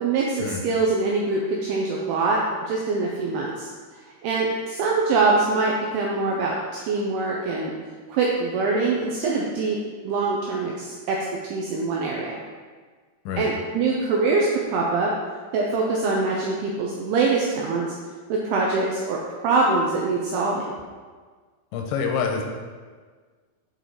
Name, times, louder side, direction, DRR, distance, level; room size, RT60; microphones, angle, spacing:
voice 1, 0.0-2.4 2.7-3.7 4.2-7.7 8.1-9.8 10.0-11.2 11.5-12.3 13.4-15.1 15.5-18.0 18.3-20.6, right 3 dB, 85° right, -2 dB, 2.3 m, -24 dB
voice 2, 21.7-22.4, left 6 dB, 85° left, 2 dB, 3.0 m, -26 dB
8.2 x 4.7 x 3.9 m, 1.5 s
omnidirectional pair, 5.3 m